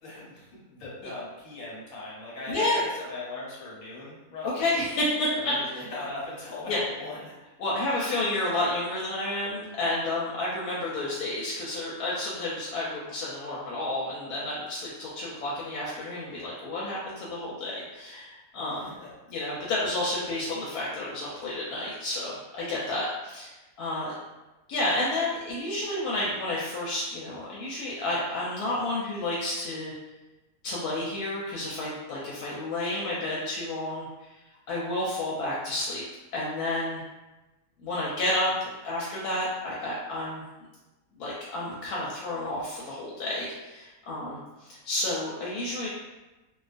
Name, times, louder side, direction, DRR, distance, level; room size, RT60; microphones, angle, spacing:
voice 1, 0.0-4.7 5.5-7.3 18.6-19.1 19.8-19.9, left 2 dB, 70° left, -6 dB, 1.3 m, -39 dB
voice 2, 2.5-2.8 4.4-5.5 6.7-6.8 7.6-18.9 19.3-23.5 23.8-24.1 24.7-30.0 30.6-34.3 34.7-36.0 36.3-37.0 37.8-40.4 41.2-45.9, left 1 dB, 85° left, -6 dB, 1.1 m, -30 dB
2.4 x 2.3 x 2.4 m, 1.1 s
omnidirectional pair, 1.6 m